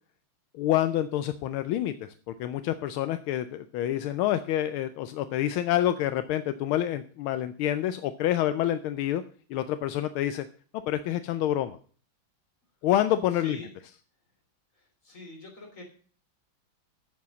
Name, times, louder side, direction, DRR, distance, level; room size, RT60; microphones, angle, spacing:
voice 1, 0.5-9.2 9.5-10.5 10.9-11.8 12.8-13.6, left 12 dB, 85° left, 11 dB, 1.5 m, -27 dB
voice 2, 13.3-13.7 14.7-15.8, left 2 dB, 35° left, 1 dB, 3.8 m, -44 dB
8.3 x 7.4 x 7.0 m, 0.43 s
omnidirectional pair, 2.3 m